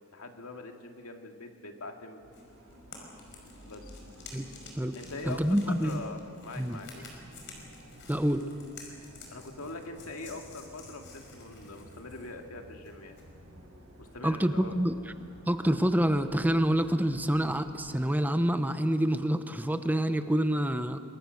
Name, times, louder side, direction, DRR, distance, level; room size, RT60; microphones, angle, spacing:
voice 1, 0.1-2.2 3.6-3.9 4.9-7.1 9.3-13.2 14.0-14.8, left 2 dB, 85° left, 4 dB, 2.2 m, -43 dB
sound 1, 2.2-18.2, equal, 75° right, 4.8 m, -52 dB
sound 2, 2.3-13.3, left 4 dB, 60° left, 5.2 m, -52 dB
voice 2, 5.3-6.0 6.6-6.8 8.1-8.4 14.2-14.9 15.5-21.0, equal, 10° right, 9 dB, 0.9 m, -27 dB
27.0 x 21.5 x 6.6 m, 2.3 s
head